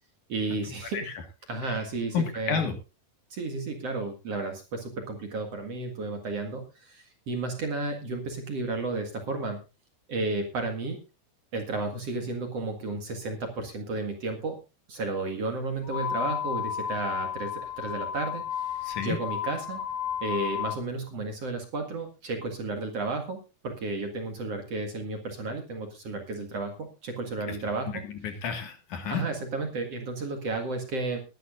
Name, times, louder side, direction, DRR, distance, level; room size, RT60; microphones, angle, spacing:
voice 1, 0.3-1.1 1.5-2.7 3.3-9.6 10.1-11.0 11.5-14.5 14.9-19.8 20.2-28.0 29.1-31.2, right 3 dB, 50° right, 4 dB, 2.5 m, -33 dB
voice 2, 2.1-2.7 18.8-19.2 27.5-27.6 27.9-29.3, left 6 dB, 60° left, 6 dB, 2.9 m, -31 dB
sound 1, 15.8-20.8, left 9 dB, 85° left, 5.7 m, -32 dB
20.5 x 11.5 x 2.5 m, 0.29 s
omnidirectional pair, 4.4 m